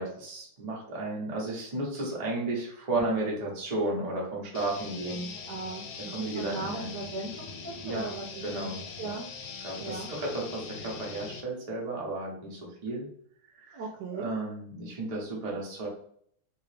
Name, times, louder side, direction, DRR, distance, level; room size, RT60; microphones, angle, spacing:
voice 1, 0.0-5.3 6.1-6.9 7.8-8.1 8.4-9.1 9.6-13.1 13.5-13.8 14.1-15.9, right 2 dB, 40° right, -3 dB, 0.5 m, -33 dB
sound 1, 4.5-11.4, left 5 dB, 75° left, 1.4 m, -42 dB
voice 2, 5.5-8.7 9.0-9.2 9.8-10.1 13.7-14.3, right 3 dB, 70° right, 0 dB, 1.1 m, -38 dB
3.3 x 2.9 x 3.2 m, 0.65 s
omnidirectional pair, 2.2 m